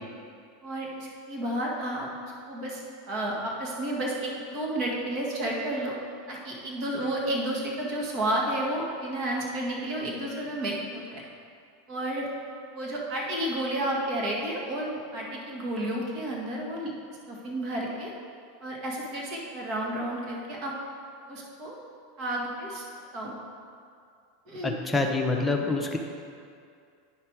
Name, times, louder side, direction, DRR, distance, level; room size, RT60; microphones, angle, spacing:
voice 1, 0.6-2.8 3.1-5.9 6.3-11.2 11.9-12.3 12.7-16.9 17.3-18.1 18.6-20.7 21.3-21.8 22.2-22.8 23.1-23.3 24.5-24.7, right 1 dB, 45° right, -2 dB, 1.8 m, -31 dB
voice 2, 24.6-26.0, left 3 dB, 10° left, 1 dB, 1.0 m, -26 dB
9.1 x 5.9 x 4.7 m, 2.3 s
figure-of-eight pair, 85°, 0 cm